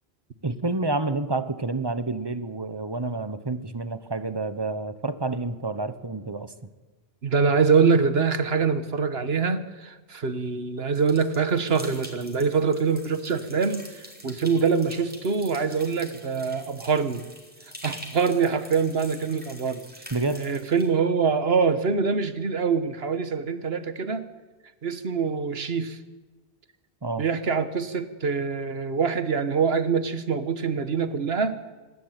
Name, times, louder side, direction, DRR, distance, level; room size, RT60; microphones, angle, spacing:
voice 1, 0.4-6.5 20.1-20.5 27.0-27.3, right 3 dB, 25° right, 13 dB, 1.1 m, -29 dB
voice 2, 7.2-17.2 17.8-24.2 24.8-26.0 27.2-31.6, right 5 dB, 70° right, 12 dB, 1.6 m, -24 dB
sound 1, 11.0-20.9, equal, 10° right, 4.1 m, -45 dB
26.5 x 12.5 x 9.1 m, 1.2 s
omnidirectional pair, 1.1 m